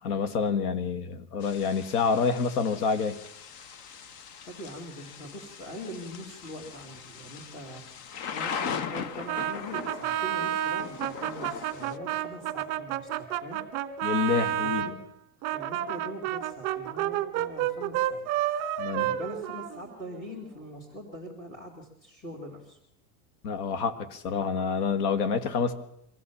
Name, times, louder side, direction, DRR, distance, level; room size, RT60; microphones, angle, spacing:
voice 1, 0.0-3.2 14.0-14.9 18.8-19.1 23.4-25.7, left 5 dB, 75° left, 10 dB, 1.8 m, -27 dB
Thunder / Rain, 1.4-12.0, left 7 dB, 45° left, 1.1 m, -39 dB
voice 2, 4.5-13.6 14.6-15.0 15.5-18.3 19.0-22.8, equal, 15° left, -1 dB, 2.3 m, -42 dB
Brass instrument, 9.3-14.9 15.4-20.2, right 12 dB, 40° right, 1.3 m, -30 dB
24.5 x 15.5 x 7.0 m, 0.76 s
supercardioid pair, 170°, 47 cm